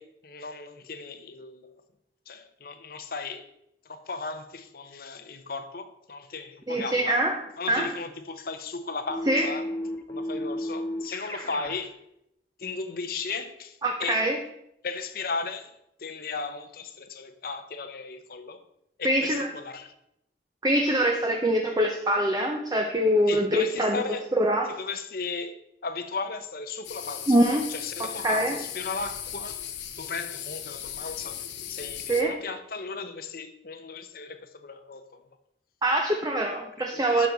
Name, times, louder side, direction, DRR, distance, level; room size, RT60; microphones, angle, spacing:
voice 1, 0.0-1.7 2.3-3.5 3.9-7.2 7.6-9.6 10.1-11.9 12.6-14.3 14.8-15.7 16.0-18.6 19.0-19.9 23.3-24.2 24.8-27.3 27.7-29.6 30.0-31.4 31.7-35.2 36.9-37.3, left 4 dB, 55° left, 0.8 m, -36 dB
voice 2, 6.7-7.4 7.7-7.9 9.3-9.5 13.8-14.4 19.0-19.5 20.6-24.0 24.4-24.7 27.3-27.7 28.0-28.6 32.1-32.4 35.8-37.3, right 1 dB, 20° right, 0.7 m, -24 dB
Keyboard (musical), 9.1-11.8, left 1 dB, 15° left, 1.5 m, -33 dB
sound 1, 26.8-32.2, left 10 dB, 90° left, 1.0 m, -37 dB
12.0 x 6.3 x 4.0 m
head